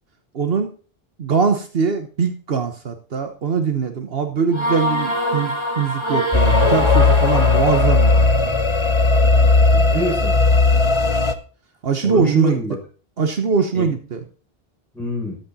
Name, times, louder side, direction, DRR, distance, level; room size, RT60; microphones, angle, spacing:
voice 1, 0.3-0.7 1.2-8.3 11.8-12.6 13.2-14.2, right 5 dB, 70° right, 7 dB, 1.3 m, -22 dB
sound 1, 4.5-8.3, equal, 25° right, 2.0 m, -24 dB
sound 2, 6.3-11.3, left 3 dB, 30° left, 0.9 m, -16 dB
voice 2, 9.7-10.4 12.0-12.8 13.7-14.0 14.9-15.4, right 1 dB, ahead, -3 dB, 6.9 m, -25 dB
13.0 x 8.6 x 4.1 m, 0.38 s
omnidirectional pair, 1.0 m